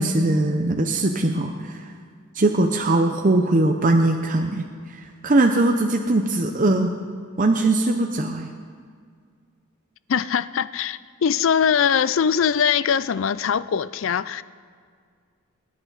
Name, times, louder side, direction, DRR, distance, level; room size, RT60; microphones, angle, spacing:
voice 1, 0.0-1.8 2.4-4.6 4.9-6.9 7.4-8.5, right 2 dB, 40° right, 0.7 m, -20 dB
voice 2, 10.1-14.4, left 7 dB, 65° left, 0.4 m, -22 dB
23.0 x 10.5 x 4.0 m
head